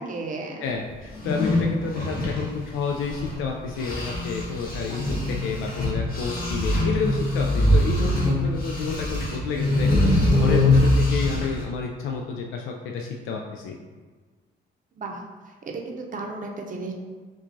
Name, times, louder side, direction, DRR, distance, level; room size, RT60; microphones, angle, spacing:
voice 1, 0.0-0.7 4.9-5.0 15.0-15.2 15.6-16.9, right 3 dB, 40° right, 1 dB, 0.6 m, -34 dB
voice 2, 0.6-13.8, left 5 dB, 85° left, 1 dB, 0.4 m, -30 dB
sound 1, 1.1-3.4 3.8-11.6, left 1 dB, 45° left, 1.2 m, -23 dB
5.8 x 2.3 x 2.6 m, 1.4 s
cardioid pair, 90°, 20 cm